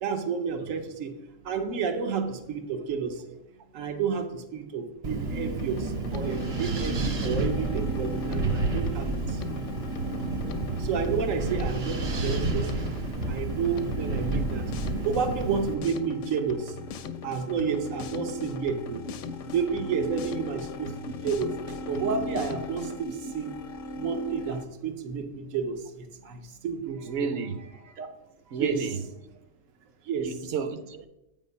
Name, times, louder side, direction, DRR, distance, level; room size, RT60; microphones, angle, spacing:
voice 1, 0.0-1.1 1.4-3.2 3.7-9.4 10.8-12.8 13.3-14.6 15.0-16.7 17.2-19.0 19.5-21.5 21.9-23.5 24.0-27.1 28.0-28.1 28.6-28.8 30.1-30.3, right 6 dB, 90° right, 6 dB, 1.2 m, -30 dB
Wind, 5.0-15.7, right 3 dB, 40° right, 0.6 m, -30 dB
Drum kit, 5.6-23.0, left 6 dB, 80° left, 0.9 m, -41 dB
sound 1, 6.2-24.6, left 1 dB, 50° left, 0.7 m, -40 dB
voice 2, 27.0-27.6 28.5-29.0 30.2-31.1, right 5 dB, 70° right, 10 dB, 0.9 m, -31 dB
8.3 x 3.6 x 5.3 m, 0.89 s
omnidirectional pair, 1.3 m